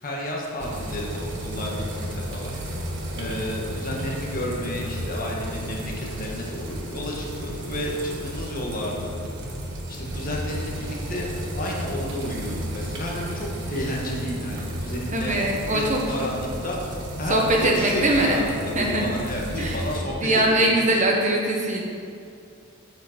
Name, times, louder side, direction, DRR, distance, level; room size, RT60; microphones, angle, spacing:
voice 1, 0.0-2.8 3.1-9.1 9.9-11.3 11.6-15.4 15.7-16.8 17.2-21.2, left 1 dB, 40° left, -3 dB, 1.5 m, -31 dB
sound 1, 0.6-20.0, right 1 dB, 55° right, 1.4 m, -33 dB
voice 2, 15.1-16.0 17.3-18.4 18.7-19.1 19.6-21.8, right 1 dB, 35° right, -1 dB, 1.1 m, -22 dB
8.2 x 5.6 x 5.9 m, 2.5 s
head